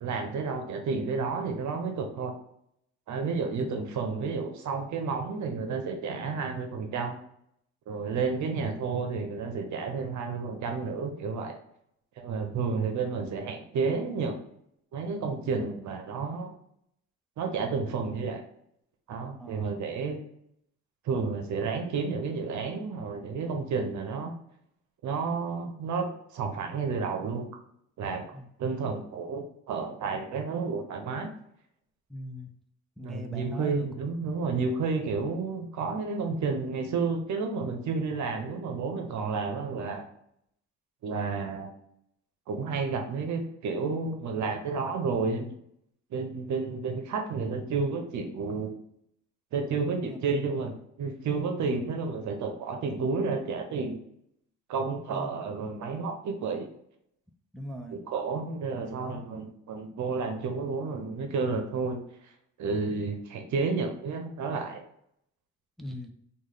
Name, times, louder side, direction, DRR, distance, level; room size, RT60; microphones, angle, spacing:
voice 1, 0.0-2.3 3.1-7.2 7.9-11.6 12.2-14.4 14.9-16.5 17.4-18.4 19.1-20.2 21.0-24.3 25.0-27.5 28.0-28.2 28.6-31.3 33.0-40.1 41.0-41.7 42.5-45.5 46.1-48.7 49.5-50.7 51.0-54.0 54.7-56.7 57.9-62.0 62.6-64.8, right 4 dB, 70° right, 4 dB, 0.8 m, -31 dB
voice 2, 32.1-32.5 33.0-33.9 49.9-50.2 51.7-51.9 55.1-55.3 57.5-58.0 58.8-59.2 65.8-66.1, equal, ahead, 3 dB, 0.5 m, -40 dB
3.2 x 2.5 x 3.8 m, 0.71 s
cardioid pair, 90°, 30 cm